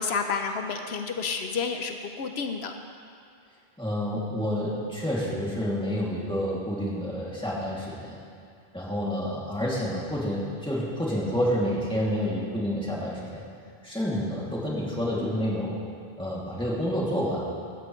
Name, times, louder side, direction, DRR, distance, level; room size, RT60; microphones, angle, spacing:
voice 1, 0.0-2.7, left 5 dB, 80° left, 6 dB, 1.0 m, -30 dB
voice 2, 3.8-8.2 8.7-13.4 13.8-15.7 16.2-17.4, equal, 5° left, -6 dB, 2.5 m, -29 dB
15.5 x 13.5 x 3.2 m, 2.3 s
omnidirectional pair, 1.1 m